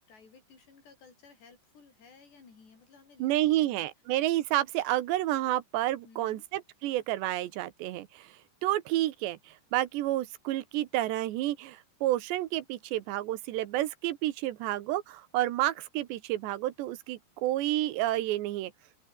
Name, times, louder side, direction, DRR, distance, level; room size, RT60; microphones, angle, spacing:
voice 1, 0.0-3.9 6.0-6.5, left 5 dB, 70° left, 8.7 m, -56 dB
voice 2, 3.2-8.3 8.6-18.7, right 15 dB, 80° right, 3.3 m, -30 dB
open air
omnidirectional pair, 5.0 m